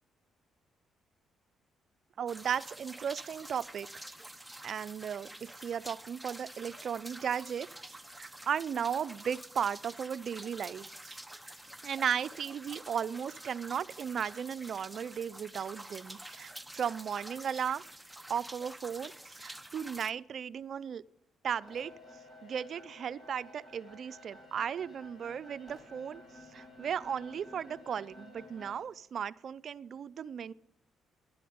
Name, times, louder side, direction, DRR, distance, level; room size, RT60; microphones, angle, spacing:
voice 1, 2.2-3.9 4.6-7.7 8.2-11.2 11.8-17.8 18.3-21.0 21.4-21.9 22.4-26.2 26.5-30.5, right 8 dB, 55° right, 15 dB, 0.5 m, -36 dB
sound 1, 2.3-20.1, right 1 dB, 5° right, 0.7 m, -48 dB
sound 2, 21.6-28.8, left 1 dB, 40° left, 5.8 m, -53 dB
11.5 x 10.0 x 9.5 m, 0.83 s
cardioid pair, 90°, 0 cm